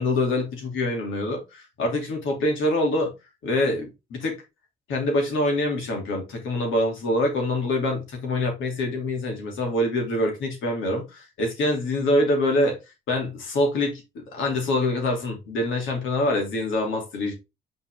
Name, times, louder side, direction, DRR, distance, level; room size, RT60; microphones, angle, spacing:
voice 1, 0.0-3.1 3.4-4.4 4.9-12.8 13.1-17.3, left 1 dB, 80° left, 2.8 m, -25 dB
5.8 x 4.6 x 3.5 m
cardioid pair, 90°, 20 cm